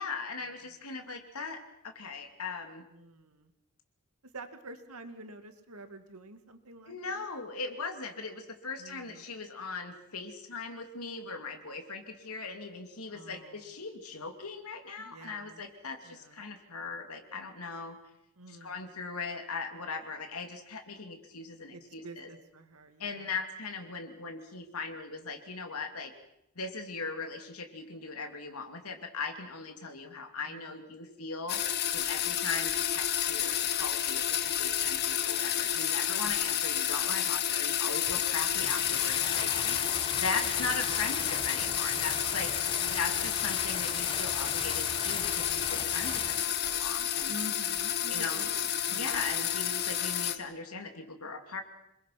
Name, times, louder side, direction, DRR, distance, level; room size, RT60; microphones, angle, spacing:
voice 1, 0.0-2.8 6.9-18.0 18.5-22.3 23.0-26.1 26.5-39.5 40.1-42.5 42.9-47.3 48.1-48.5 48.9-51.6, left 4 dB, 85° left, 5 dB, 2.8 m, -39 dB
voice 2, 2.9-3.5 4.3-7.3 8.8-9.3 13.1-13.7 15.0-15.6 16.0-16.4 18.4-18.9 21.7-23.3 30.4-30.8 36.2-36.3 39.6-40.6 42.8-43.3 47.3-49.2, right 1 dB, 90° right, 8 dB, 2.2 m, -48 dB
sound 1, 31.5-50.4, left 10 dB, 50° left, 1.4 m, -30 dB
sound 2, 38.1-46.4, left 5 dB, 25° left, 1.1 m, -38 dB
28.0 x 21.5 x 6.0 m, 0.80 s
head